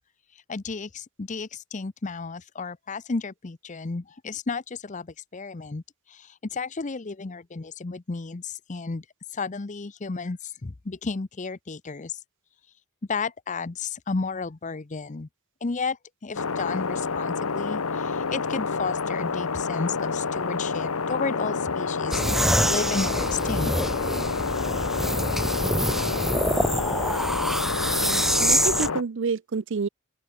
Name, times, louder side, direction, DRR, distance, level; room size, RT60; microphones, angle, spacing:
voice 1, 0.5-5.8 6.1-9.0 9.3-12.2 13.1-15.3 15.6-22.2 22.6-23.7, left 4 dB, 35° left, 0.6 m, -32 dB
sound 1, 16.3-29.0, left 4 dB, 80° left, 1.0 m, -28 dB
sound 2, 22.1-28.9, equal, ahead, 0.8 m, -25 dB
voice 2, 27.9-29.9, right 5 dB, 55° right, 0.5 m, -29 dB
open air
head